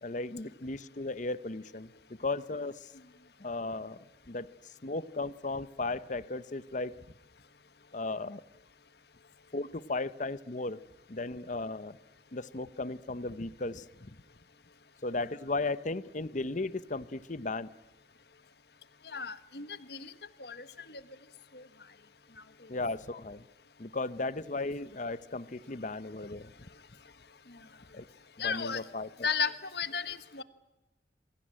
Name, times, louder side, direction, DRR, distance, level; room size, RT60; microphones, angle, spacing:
voice 1, 0.0-1.9 2.2-2.9 3.4-4.0 4.3-4.5 4.8-6.9 7.9-8.4 9.5-10.8 11.1-12.0 12.3-14.1 15.0-17.7 22.7-23.4 23.8-26.5 27.9-28.0 28.4-29.1, left 3 dB, 45° left, 16 dB, 0.9 m, -35 dB
voice 2, 19.0-20.1 20.4-21.0 21.5-21.7 27.5-27.6 28.4-28.8 29.2-30.4, left 6 dB, 65° left, 12 dB, 1.5 m, -34 dB
28.0 x 22.0 x 9.0 m, 0.99 s
head